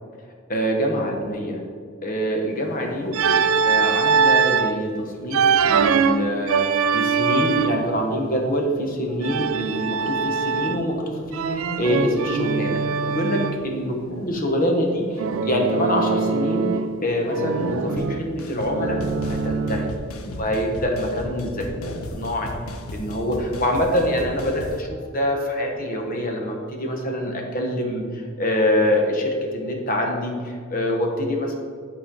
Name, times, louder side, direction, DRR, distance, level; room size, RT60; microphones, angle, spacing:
voice 1, 0.5-1.6 2.0-3.1 3.6-16.7 17.0-19.0 19.3-19.9 20.4-21.7 22.1-22.5 22.9-31.5, equal, 40° left, 2 dB, 1.2 m, -25 dB
voice 2, 2.9-3.5 14.0-14.3 20.2-20.4 21.7-22.0, left 1 dB, 65° left, 0 dB, 1.1 m, -36 dB
Organ, 3.1-4.8 5.3-8.0 9.2-11.0 11.3-13.6 15.2-17.0 17.3-20.0, right 5 dB, 70° right, 0.4 m, -22 dB
sound 1, 18.0-18.1 18.4-18.7 19.0-24.8, left 1 dB, 90° left, 0.7 m, -35 dB
11.0 x 4.5 x 3.8 m, 2.1 s
head